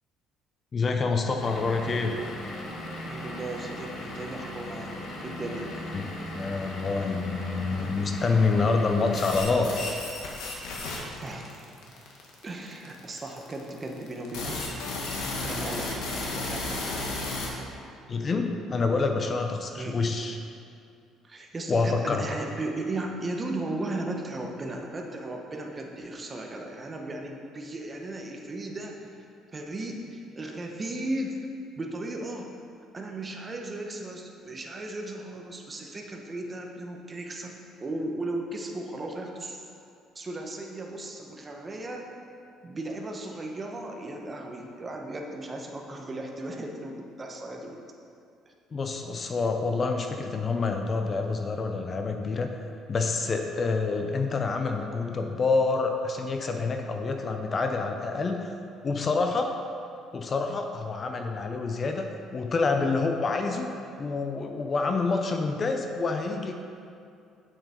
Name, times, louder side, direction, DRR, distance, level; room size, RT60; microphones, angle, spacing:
voice 1, 0.7-2.1 5.9-6.0 6.3-9.8 18.1-20.4 21.7-22.3 48.7-52.5 52.9-58.5 58.8-59.6 60.1-63.7 64.0-66.5, left 4 dB, 35° left, 4 dB, 0.7 m, -27 dB
Vehicle / Engine, 1.4-9.4, left 1 dB, 65° left, 1.7 m, -38 dB
voice 2, 3.0-5.8 11.2-11.7 12.4-14.6 15.4-16.9 19.8-20.0 21.2-29.0 29.5-31.4 31.8-32.5 32.9-37.5 37.8-39.6 40.1-42.1 42.6-47.8 48.5-48.6, right 2 dB, 25° right, 2 dB, 1.2 m, -36 dB
sound 1, 9.1-17.5, left 2 dB, 85° left, 1.9 m, -33 dB
9.3 x 7.8 x 4.5 m, 2.5 s
cardioid pair, 115°, 0 cm